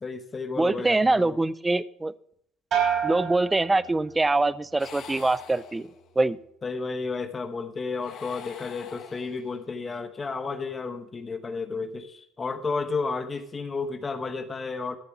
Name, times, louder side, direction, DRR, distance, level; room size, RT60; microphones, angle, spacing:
voice 1, 0.0-1.4 6.6-15.0, left 4 dB, 20° left, 9 dB, 0.9 m, -32 dB
voice 2, 0.6-2.1 3.0-5.9 6.2-6.4, right 2 dB, 10° right, 17 dB, 0.4 m, -24 dB
sound 1, 2.7-4.4 4.8-5.4, right 8 dB, 40° right, 4.9 m, -30 dB
sound 2, 4.8-6.3 7.9-9.7, left 8 dB, 50° left, 1.5 m, -45 dB
13.0 x 6.8 x 6.0 m, 0.67 s
cardioid pair, 135°, 0 cm